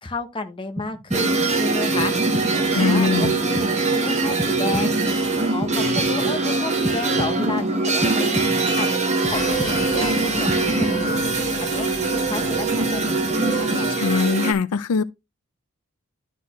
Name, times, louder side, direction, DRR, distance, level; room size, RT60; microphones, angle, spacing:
voice 1, 0.0-2.1 2.6-5.0 5.5-8.3 8.7-11.2 11.6-13.9, left 3 dB, 25° left, 0.9 m, -32 dB
sound 1, 0.8-1.6 2.0-2.7 3.2-4.0 4.4-5.2 5.6-6.4 6.8-7.6 8.0-8.8 9.2-10.1 10.5-11.3, equal, 10° right, 0.7 m, -32 dB
sound 2, 1.1-14.5, right 3 dB, 30° right, 1.3 m, -22 dB
voice 2, 2.7-3.4 14.0-15.0, left 5 dB, 85° left, 0.4 m, -22 dB
sound 3, 9.3-14.3, left 4 dB, 55° left, 0.8 m, -36 dB
12.0 x 4.2 x 3.0 m
head